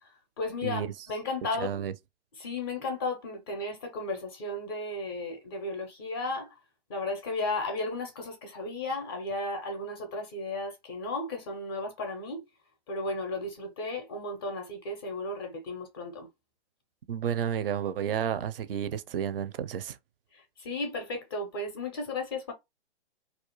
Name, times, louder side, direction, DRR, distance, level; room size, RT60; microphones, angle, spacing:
voice 1, 0.0-1.9 2.4-6.6 6.9-12.4 12.9-16.3 20.3-22.5, left 2 dB, 20° left, 0.4 m, -34 dB
voice 2, 0.6-0.9 1.6-1.9 17.1-20.0, right 9 dB, 55° right, 0.5 m, -31 dB
2.4 x 2.1 x 2.9 m
hypercardioid pair, 135°, 34 cm